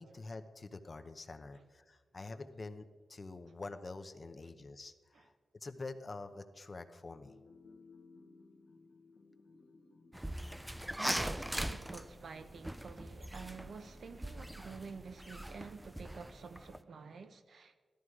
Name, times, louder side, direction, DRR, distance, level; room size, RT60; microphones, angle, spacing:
voice 1, 0.0-5.3 5.6-7.3, left 3 dB, 30° left, 0.8 m, -47 dB
sound 1, 7.2-16.0, left 3 dB, 70° left, 2.0 m, -62 dB
sound 2, 10.1-16.8, right 1 dB, 5° right, 0.4 m, -41 dB
voice 2, 10.9-17.8, right 5 dB, 60° right, 1.0 m, -49 dB
16.0 x 13.0 x 4.8 m
wide cardioid pair, 145°, 0 cm